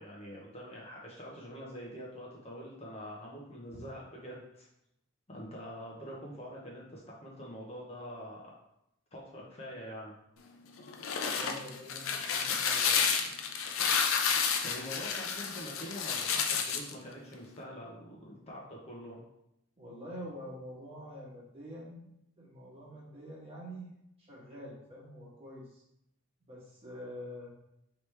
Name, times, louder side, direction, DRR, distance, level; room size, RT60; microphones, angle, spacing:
voice 1, 0.0-4.7 5.3-8.5 9.1-10.1 14.6-19.2, equal, 30° left, -3 dB, 0.8 m, -45 dB
sound 1, 10.8-16.9, left 6 dB, 75° left, 0.5 m, -30 dB
voice 2, 11.3-13.3 19.8-22.0 22.4-23.9 24.2-25.8 26.4-27.5, equal, 30° right, -6 dB, 1.5 m, -46 dB
4.8 x 3.1 x 3.3 m, 0.80 s
head